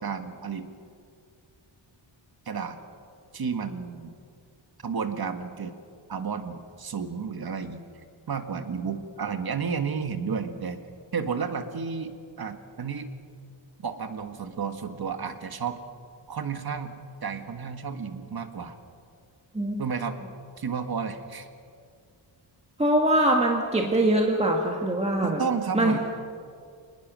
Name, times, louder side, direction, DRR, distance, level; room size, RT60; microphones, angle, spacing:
voice 1, 0.0-0.7 2.4-2.8 3.3-4.1 4.8-5.7 6.1-7.8 8.3-10.8 11.1-13.1 13.8-15.8 16.3-18.8 19.8-20.2 20.6-21.5 25.2-26.0, right 6 dB, 50° right, 7 dB, 1.7 m, -32 dB
voice 2, 22.8-25.4 25.7-26.0, right 1 dB, 15° right, 1 dB, 1.7 m, -23 dB
27.0 x 20.0 x 6.3 m, 2.2 s
wide cardioid pair, 140°, 47 cm